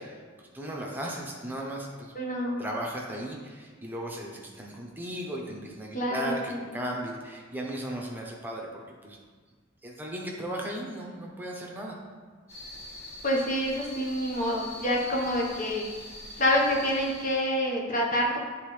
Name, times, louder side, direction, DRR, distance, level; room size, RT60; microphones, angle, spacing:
voice 1, 0.0-2.1 2.6-8.7 9.0-9.2 9.8-12.0, right 1 dB, 10° right, -2 dB, 0.9 m, -36 dB
voice 2, 2.1-2.6 5.9-6.6 13.2-15.9 16.4-18.4, equal, 40° left, -1 dB, 1.0 m, -27 dB
sound 1, 12.5-17.5, left 1 dB, 80° left, 2.0 m, -43 dB
9.6 x 3.8 x 3.2 m, 1.5 s
head